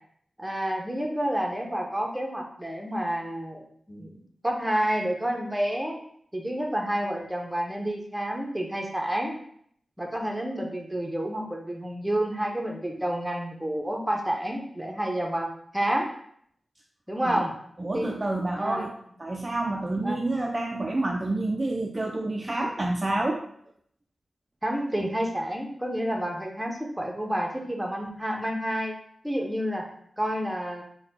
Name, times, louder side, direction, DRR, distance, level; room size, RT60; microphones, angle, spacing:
voice 1, 0.4-3.6 3.9-6.0 6.3-9.4 10.0-16.1 17.1-17.5 17.9-18.1 18.6-18.9 20.0-20.2 24.6-28.9 29.2-29.8 30.2-30.8, right 1 dB, 5° right, 1 dB, 0.7 m, -29 dB
voice 2, 17.8-18.9 19.2-23.4, right 2 dB, 30° right, 1 dB, 0.3 m, -28 dB
4.0 x 2.2 x 4.1 m, 0.66 s
wide cardioid pair, 80°, 0 cm